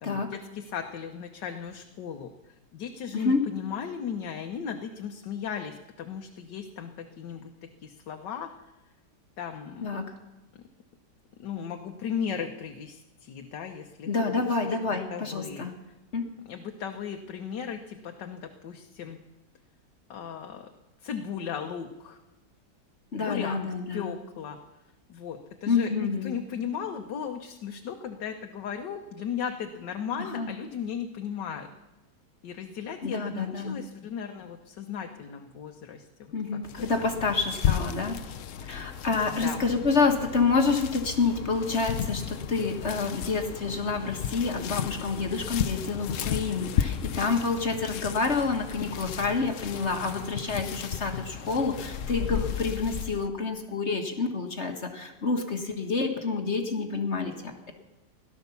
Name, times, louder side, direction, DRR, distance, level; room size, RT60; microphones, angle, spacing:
voice 1, 0.0-8.5 9.4-10.0 10.5-10.6 11.4-14.8 15.1-15.7 16.4-19.2 20.1-20.7 21.0-22.2 23.2-23.6 23.9-24.6 25.1-31.7 32.4-36.3 37.0-37.1 39.3-39.6, left 7 dB, 85° left, 4 dB, 1.6 m, -36 dB
voice 2, 14.1-15.7 16.1-16.3 23.1-24.1 25.7-26.3 30.2-30.5 33.0-33.8 36.3-38.2 38.6-57.7, left 4 dB, 45° left, 4 dB, 1.5 m, -28 dB
sound 1, 36.6-53.3, left 9 dB, 60° left, 0.9 m, -34 dB
17.0 x 12.0 x 7.0 m, 1.1 s
omnidirectional pair, 1.8 m